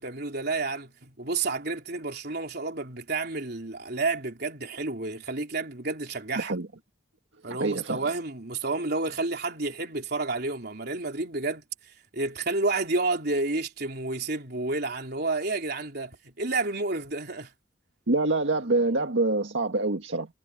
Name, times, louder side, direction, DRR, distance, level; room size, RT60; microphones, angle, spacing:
voice 1, 0.0-6.6 7.4-11.6 12.1-17.5, right 3 dB, 55° right, 3.7 m, -30 dB
voice 2, 6.4-6.7 7.5-8.0 18.1-20.3, right 2 dB, 85° right, 1.7 m, -26 dB
head